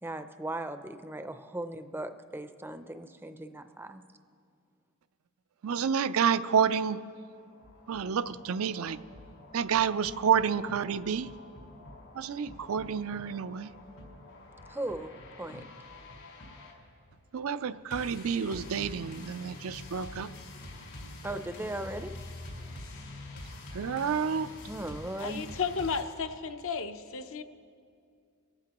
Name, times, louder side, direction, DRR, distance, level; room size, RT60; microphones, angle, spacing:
voice 1, 0.0-4.0 14.7-15.1 15.4-15.7 21.2-22.2 24.7-25.5, right 1 dB, 10° right, 9 dB, 0.5 m, -38 dB
voice 2, 5.6-7.0 7.9-9.0 9.5-11.3 12.1-13.7 17.3-20.3 23.7-24.6, right 7 dB, 65° right, 13 dB, 0.4 m, -29 dB
sound 1, 7.3-26.0, left 2 dB, 85° left, 4.7 m, -46 dB
voice 3, 25.2-27.4, left 5 dB, 65° left, 8 dB, 0.7 m, -33 dB
29.5 x 14.5 x 3.0 m, 2.3 s
head